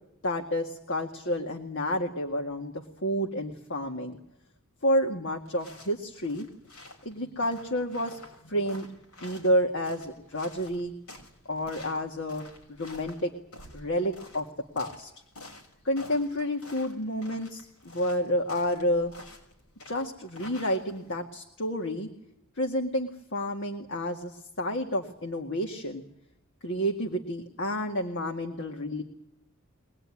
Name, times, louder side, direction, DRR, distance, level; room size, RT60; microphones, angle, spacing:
voice 1, 0.2-4.2 4.8-6.5 7.1-8.9 9.2-10.9 11.5-13.3 13.7-14.5 14.8-15.1 15.8-19.1 19.9-22.1 22.6-26.0 26.6-29.0, equal, 60° left, 3 dB, 2.1 m, -30 dB
sound 1, 5.4-21.2, left 1 dB, 90° left, 6.1 m, -49 dB
23.0 x 19.5 x 9.8 m, 0.77 s
head